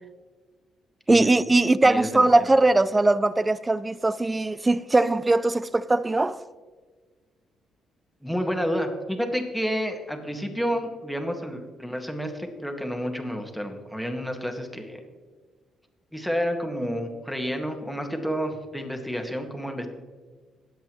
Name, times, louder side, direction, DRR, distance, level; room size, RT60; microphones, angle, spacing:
voice 1, 1.1-6.4, right 2 dB, 20° right, 0.4 m, -20 dB
voice 2, 1.8-2.3 8.2-15.0 16.1-19.9, equal, ahead, 1.7 m, -30 dB
19.0 x 7.9 x 3.1 m
cardioid pair, 90°, 0 cm